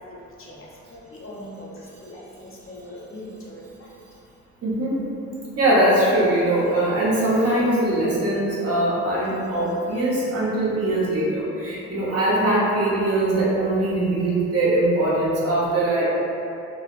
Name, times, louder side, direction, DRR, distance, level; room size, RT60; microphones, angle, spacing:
voice 1, 1.1-1.7 2.0-3.6 11.8-11.9, left 1 dB, 45° left, -4 dB, 0.6 m, -40 dB
voice 2, 4.6-5.0 5.6-16.0, right 1 dB, 55° right, -7 dB, 0.9 m, -21 dB
3.8 x 2.1 x 2.4 m, 2.8 s
cardioid pair, 90°, 30 cm